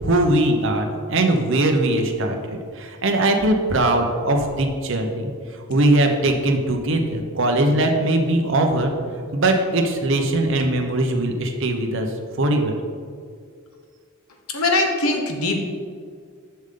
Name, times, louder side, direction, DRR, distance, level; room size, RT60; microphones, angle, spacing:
voice 1, 0.0-5.3 5.7-8.9 9.3-12.1 12.4-12.8, right 1 dB, 60° right, 3 dB, 0.8 m, -20 dB
voice 2, 14.5-15.6, left 2 dB, 80° left, 3 dB, 1.0 m, -21 dB
7.2 x 6.5 x 3.8 m, 2.1 s
head